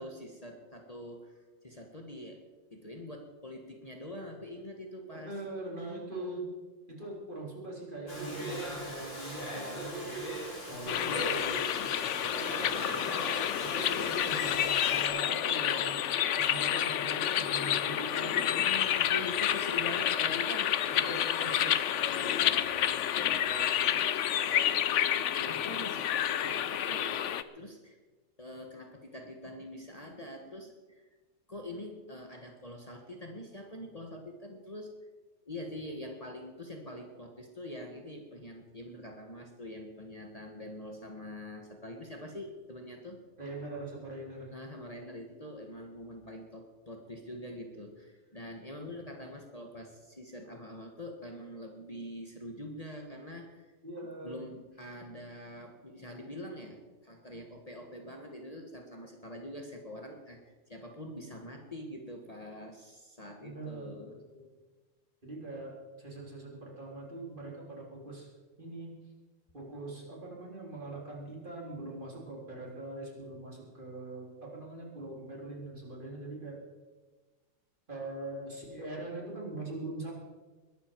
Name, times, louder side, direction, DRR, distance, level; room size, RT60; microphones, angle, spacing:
voice 1, 0.0-2.4 2.7-5.3 5.7-6.2 10.7-11.4 18.4-28.0 28.4-31.0 31.5-34.9 35.4-43.2 44.5-53.7 54.2-64.2, left 1 dB, 30° left, 2 dB, 1.6 m, -44 dB
voice 2, 5.1-6.5 6.9-10.2 10.7-13.2 13.6-16.0 16.3-18.6 20.9-21.5 43.4-44.5 53.8-54.4 63.4-64.5 65.2-68.3 68.6-69.0 69.5-76.6 77.9-80.1, right 2 dB, 40° right, -2 dB, 3.7 m, -42 dB
Domestic sounds home sounds, 8.1-15.1, equal, 50° left, 4.2 m, -39 dB
sound 1, 10.9-27.4, left 10 dB, 70° left, 1.0 m, -29 dB
21.5 x 12.5 x 4.6 m, 1.3 s
omnidirectional pair, 1.3 m